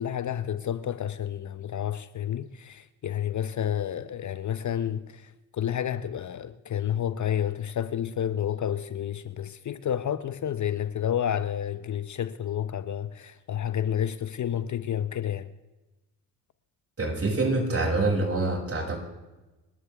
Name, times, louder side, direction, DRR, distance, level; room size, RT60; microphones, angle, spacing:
voice 1, 0.0-15.5, left 9 dB, 45° left, 0.8 m, -30 dB
voice 2, 17.0-19.0, right 2 dB, 35° right, 6.6 m, -26 dB
26.0 x 13.0 x 3.5 m
supercardioid pair, 65°, 40 cm